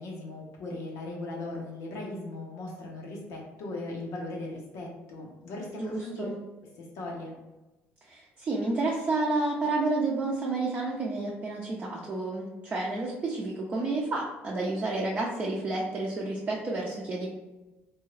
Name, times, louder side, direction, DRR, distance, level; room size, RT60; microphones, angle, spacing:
voice 1, 0.0-6.3 6.8-7.3, left 2 dB, 80° left, -1 dB, 1.0 m, -38 dB
voice 2, 5.7-6.3 8.1-17.3, right 2 dB, 25° right, -4 dB, 0.6 m, -30 dB
3.6 x 2.7 x 3.2 m, 1.1 s
cardioid pair, 135°, 5 cm